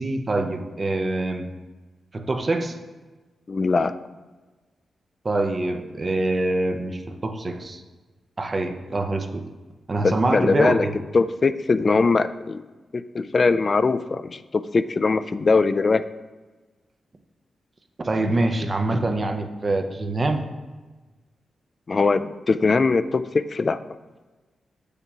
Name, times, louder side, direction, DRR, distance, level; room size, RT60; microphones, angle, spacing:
voice 1, 0.0-1.5 2.1-2.8 5.2-7.8 8.4-9.5 9.9-10.9 18.0-20.4, right 2 dB, 40° right, 6 dB, 0.7 m, -25 dB
voice 2, 3.5-4.0 10.0-10.9 11.1-12.6 12.9-16.1 21.9-23.8, left 4 dB, 45° left, 13 dB, 0.3 m, -21 dB
6.7 x 6.7 x 2.9 m, 1.2 s
cardioid pair, 60°, 0 cm